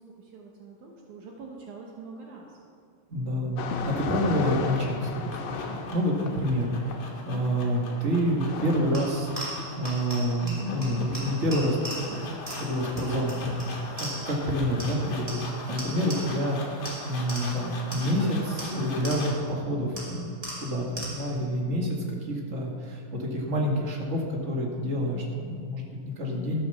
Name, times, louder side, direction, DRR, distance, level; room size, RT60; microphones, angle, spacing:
voice 1, 0.0-2.6 6.3-6.6, right 4 dB, 70° right, 0 dB, 2.4 m, -45 dB
voice 2, 3.1-6.7 7.2-9.3 9.8-11.8 12.1-13.7 14.0-26.6, equal, 30° right, -1 dB, 1.5 m, -28 dB
sound 1, 3.6-14.7, left 5 dB, 80° left, 2.5 m, -39 dB
sound 2, 5.1-19.5, left 3 dB, 50° left, 2.6 m, -41 dB
sound 3, 8.9-14.5 14.8-16.5 16.8-19.5 20.0-21.4, right 1 dB, 10° right, 2.2 m, -40 dB
13.5 x 7.9 x 6.7 m, 2.2 s
omnidirectional pair, 3.9 m